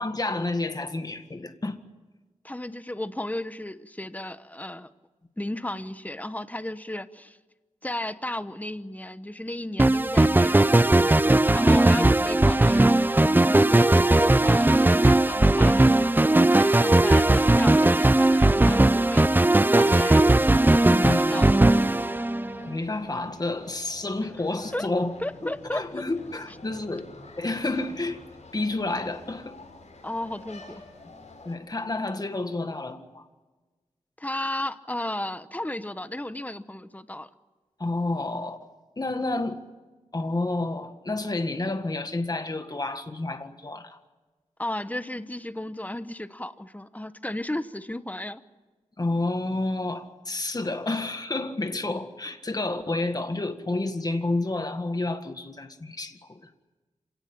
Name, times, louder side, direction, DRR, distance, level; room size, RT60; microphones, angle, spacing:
voice 1, 0.0-1.8 12.0-12.1 20.9-21.4 22.6-25.1 25.4-27.1 27.4-28.2 28.5-29.6 31.5-33.3 37.8-38.6 39.0-39.6 40.1-44.0 49.0-56.5, left 2 dB, 30° left, 1.8 m, -30 dB
voice 2, 2.4-4.9 5.4-7.4 7.8-11.2 11.5-12.9 13.4-16.1 16.5-19.3 19.7-20.3 20.7-21.6 24.7-24.9 25.2-25.8 30.0-30.8 34.2-37.3 44.6-48.4, left 1 dB, 15° left, 1.1 m, -34 dB
sound 1, 9.8-22.7, right 2 dB, 15° right, 0.7 m, -19 dB
sound 2, 20.2-31.6, left 2 dB, 70° left, 6.5 m, -48 dB
27.5 x 18.0 x 8.8 m
wide cardioid pair, 85°, 12 cm